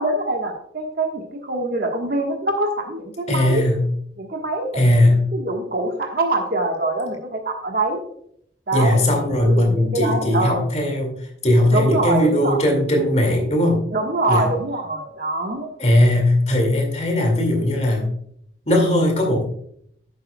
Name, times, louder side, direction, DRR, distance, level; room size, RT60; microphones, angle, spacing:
voice 1, 0.0-3.7 4.2-4.8 5.3-8.0 8.7-9.0 9.4-10.6 11.7-12.6 13.9-15.7, right 2 dB, 50° right, 3 dB, 1.4 m, -24 dB
voice 2, 3.3-3.9 4.7-5.3 8.7-13.8 14.3-14.5 15.8-18.1 18.7-19.5, left 1 dB, 35° left, 2 dB, 2.2 m, -18 dB
10.5 x 8.6 x 2.3 m, 0.69 s
head